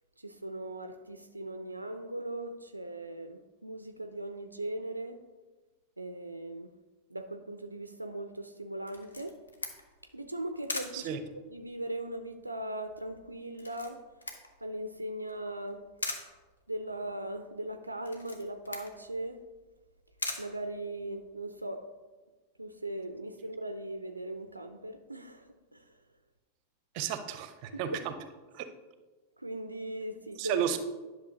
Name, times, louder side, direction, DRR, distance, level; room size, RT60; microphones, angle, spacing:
voice 1, 0.2-5.2 6.0-6.7 7.1-9.4 10.1-14.0 14.6-15.8 16.7-19.4 20.4-21.8 22.6-25.9 27.9-28.0 29.4-30.6, right 1 dB, 85° right, 8 dB, 0.4 m, -39 dB
Camera, 8.9-21.4, left 3 dB, 75° left, 0.9 m, -43 dB
voice 2, 26.9-28.1 28.5-28.7 30.4-30.8, right 9 dB, 45° right, 10 dB, 0.6 m, -32 dB
10.5 x 6.1 x 2.8 m, 1.3 s
figure-of-eight pair, 90°, 0 cm